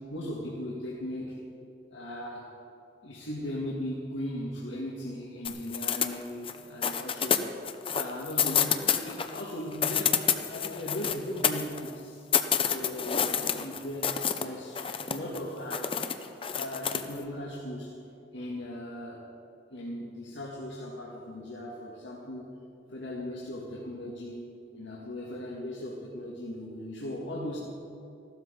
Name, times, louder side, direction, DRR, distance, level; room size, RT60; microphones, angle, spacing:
voice 1, 0.1-1.4 1.9-2.5 3.0-7.6 7.9-12.2 12.6-14.1 14.4-16.0 16.5-18.0 18.3-19.2 19.7-22.4 22.9-27.6, left 1 dB, 90° left, -4 dB, 1.8 m, -38 dB
sound 1, 5.4-6.6 6.8-9.4 9.7-11.9 12.3-14.4 14.8-15.4 15.7-17.1, left 8 dB, 30° left, 0.7 m, -28 dB
14.5 x 12.5 x 5.1 m, 2.7 s
head